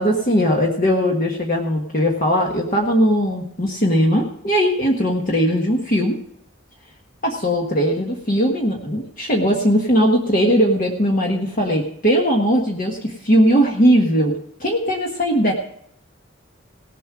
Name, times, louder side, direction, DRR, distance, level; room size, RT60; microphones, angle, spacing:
voice 1, 0.0-6.2 7.2-15.5, equal, 45° left, 0 dB, 1.5 m, -19 dB
18.0 x 7.6 x 4.9 m, 0.71 s
head